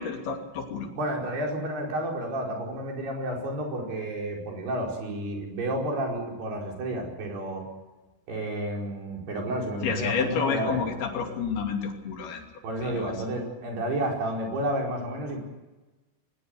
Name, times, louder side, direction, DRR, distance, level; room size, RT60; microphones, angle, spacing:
voice 1, 0.0-0.9 9.8-12.5 12.8-13.1, left 6 dB, 70° left, 3 dB, 4.7 m, -30 dB
voice 2, 1.0-7.6 8.3-10.8 12.6-15.4, right 1 dB, 75° right, 0 dB, 7.0 m, -31 dB
22.0 x 19.0 x 8.0 m, 1.1 s
omnidirectional pair, 4.7 m